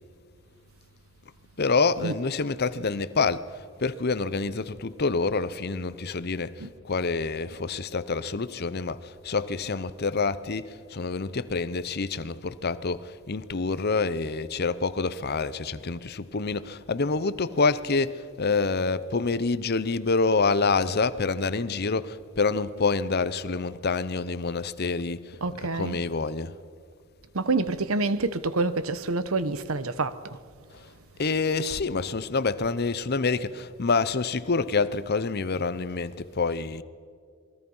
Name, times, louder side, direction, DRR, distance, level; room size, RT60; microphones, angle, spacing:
voice 1, 1.6-26.6 30.7-30.8 31.2-36.8, left 4 dB, 50° left, 0.8 m, -27 dB
voice 2, 25.4-26.1 27.3-30.4, right 3 dB, 90° right, 1.1 m, -27 dB
27.5 x 21.0 x 5.5 m
head